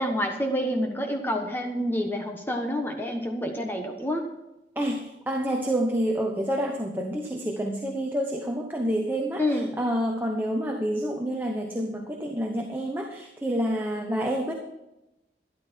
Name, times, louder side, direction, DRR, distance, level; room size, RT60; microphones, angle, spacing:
voice 1, 0.0-4.2 9.4-9.8, equal, 10° left, 3 dB, 1.2 m, -28 dB
voice 2, 4.7-14.5, right 1 dB, 10° right, 1 dB, 1.0 m, -28 dB
13.0 x 11.0 x 4.5 m, 0.93 s
head